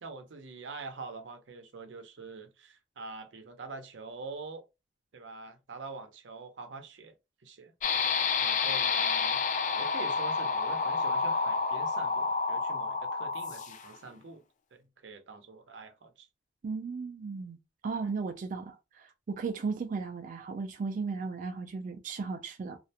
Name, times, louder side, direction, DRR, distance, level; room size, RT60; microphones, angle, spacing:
voice 1, 0.0-4.6 5.1-7.1 7.4-7.7 8.4-9.4 9.7-14.4 14.7-16.3 18.0-18.1, right 3 dB, 90° right, 0.6 m, -45 dB
sound 1, 7.8-14.0, left 4 dB, 45° left, 0.3 m, -29 dB
voice 2, 16.6-17.6 17.8-22.8, right 4 dB, 45° right, 0.3 m, -35 dB
2.4 x 2.1 x 2.7 m
head